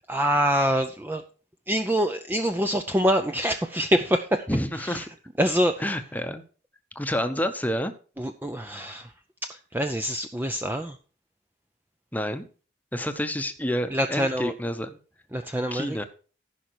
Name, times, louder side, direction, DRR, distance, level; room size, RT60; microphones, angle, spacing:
voice 1, 0.1-1.2 1.7-4.5 4.8-5.0 5.4-6.0 8.2-9.1 9.5-11.0 13.9-14.5 15.3-16.0, equal, 10° right, 6 dB, 0.5 m, -25 dB
voice 2, 4.5-5.1 5.8-6.4 6.9-7.9 12.1-12.4 12.9-15.0 15.7-16.0, equal, 10° left, 8 dB, 0.9 m, -28 dB
14.5 x 5.8 x 4.7 m, 0.37 s
head